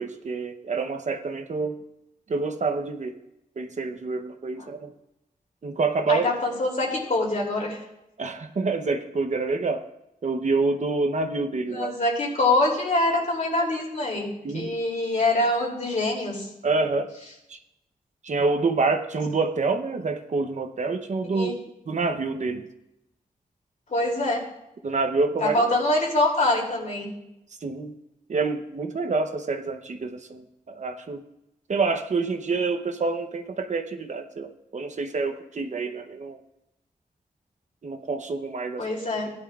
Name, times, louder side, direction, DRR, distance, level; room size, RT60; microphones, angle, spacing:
voice 1, 0.0-1.8 2.3-3.2 3.6-4.9 5.6-6.3 8.2-9.8 10.2-11.9 14.4-14.7 16.6-17.1 17.5-17.6 18.2-21.5 21.9-22.7 24.8-25.5 27.6-27.9 28.3-31.2 31.7-36.4 37.8-38.9, right 3 dB, 55° right, 7 dB, 0.9 m, -27 dB
voice 2, 6.1-7.8 11.7-16.5 21.2-21.5 23.9-24.4 25.4-27.1 38.8-39.3, left 2 dB, 60° left, -1 dB, 3.0 m, -24 dB
17.0 x 11.0 x 2.5 m, 0.88 s
wide cardioid pair, 140°, 14 cm